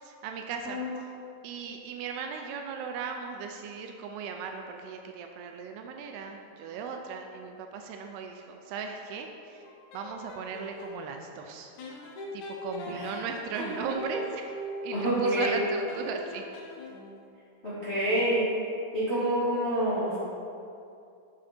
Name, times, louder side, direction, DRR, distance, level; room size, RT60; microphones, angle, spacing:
voice 1, 0.0-0.8 1.4-9.6 9.9-11.7 12.3-14.5 14.8-16.4, right 5 dB, 80° right, 4 dB, 2.5 m, -37 dB
sound 1, 9.6-11.0 11.8-17.2, left 1 dB, 90° left, 1.6 m, -40 dB
voice 2, 14.9-15.6 17.6-18.5 18.9-20.2, right 1 dB, 40° left, -11 dB, 0.9 m, -27 dB
9.1 x 7.3 x 4.3 m, 2.6 s
omnidirectional pair, 4.9 m